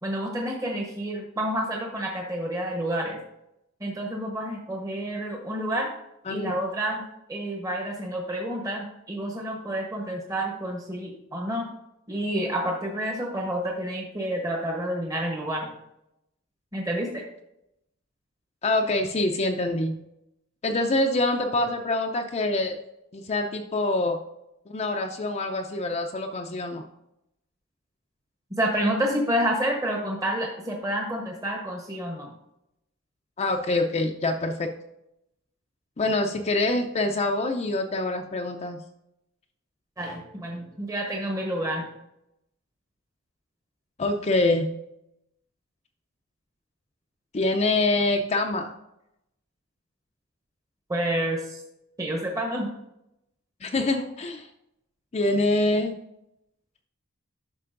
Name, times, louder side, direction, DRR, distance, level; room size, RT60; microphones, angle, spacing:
voice 1, 0.0-3.2 3.8-5.9 6.3-7.0 7.3-11.7 12.1-15.7 16.7-17.2 28.6-32.3 40.0-41.8 50.9-51.6 52.0-52.7, right 1 dB, 15° right, 0 dB, 1.0 m, -29 dB
voice 2, 6.3-6.6 18.6-20.0 20.6-22.8 23.1-24.2 24.7-26.8 33.4-34.7 36.0-38.8 44.0-44.8 47.3-48.7 53.6-54.5 55.1-56.0, left 2 dB, 30° left, 3 dB, 0.5 m, -25 dB
11.0 x 6.0 x 2.5 m, 0.83 s
head